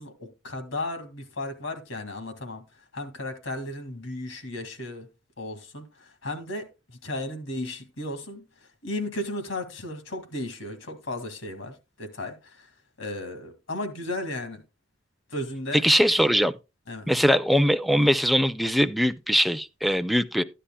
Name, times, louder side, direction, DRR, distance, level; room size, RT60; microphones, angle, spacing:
voice 1, 0.0-2.6 2.9-5.1 5.4-8.4 8.8-12.7 13.0-14.6 15.3-15.8 16.9-17.1, left 1 dB, 90° left, 2.0 m, -35 dB
voice 2, 15.7-16.5 17.1-20.4, equal, ahead, 0.4 m, -21 dB
13.0 x 10.0 x 2.2 m
head